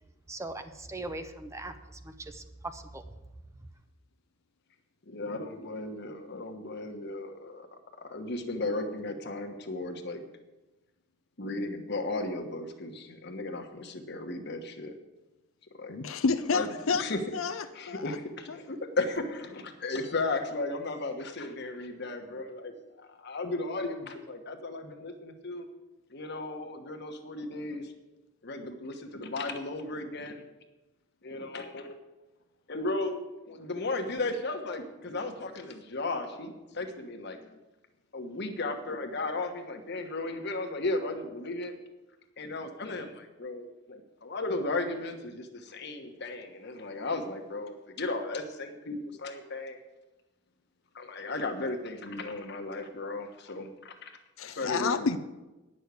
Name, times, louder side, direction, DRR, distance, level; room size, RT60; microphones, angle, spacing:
voice 1, 0.3-3.0, right 2 dB, 15° right, 8 dB, 0.6 m, -40 dB
voice 2, 5.1-7.7 8.0-10.2 11.4-14.9 15.8-16.0 16.5-16.7 17.0-17.2 17.7-25.7 26.1-27.9 28.4-30.4 31.2-32.0 32.7-33.2 33.5-37.6 38.1-41.7 42.4-49.8 50.9-54.1 54.4-55.2, left 2 dB, 55° left, 5 dB, 1.2 m, -35 dB
voice 3, 15.9-17.0 17.3-18.2 54.4-55.2, left 4 dB, 75° left, 11 dB, 0.5 m, -29 dB
9.8 x 6.5 x 8.3 m, 1.1 s
head